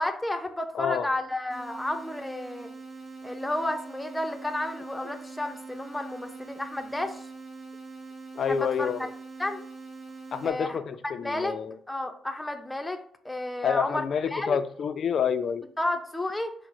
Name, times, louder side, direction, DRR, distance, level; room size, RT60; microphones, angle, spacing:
voice 1, 0.0-2.7 3.2-7.3 8.5-8.9 9.4-9.6 10.4-10.8 11.2-11.6 11.9-14.6 15.8-16.5, left 1 dB, 10° left, 6 dB, 0.6 m, -32 dB
voice 2, 0.7-1.1 8.3-9.1 10.3-11.8 13.6-15.6, left 7 dB, 55° left, 11 dB, 0.4 m, -28 dB
sound 1, 1.5-10.5, right 4 dB, 30° right, 1.0 m, -43 dB
4.9 x 2.1 x 4.6 m, 0.63 s
cardioid pair, 90°, 0 cm